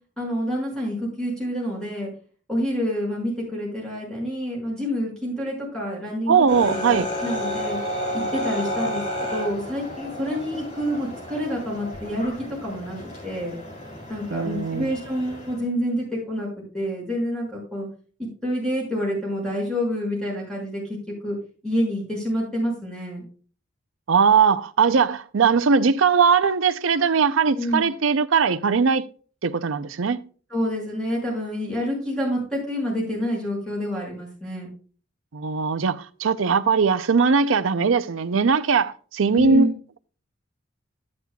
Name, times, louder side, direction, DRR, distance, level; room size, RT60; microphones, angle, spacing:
voice 1, 0.2-2.1 2.5-7.8 8.1-13.6 14.1-16.5 16.7-17.9 18.2-21.4 21.6-23.2 27.5-27.9 30.5-34.7 39.3-39.7, equal, 5° left, 5.9 m, -28 dB
voice 2, 6.3-7.1 14.3-14.9 24.1-29.1 29.4-30.3 35.3-39.7, right 5 dB, 85° right, 0.6 m, -20 dB
sound 1, 6.5-15.6, equal, 35° left, 3.7 m, -32 dB
12.0 x 9.7 x 2.3 m
head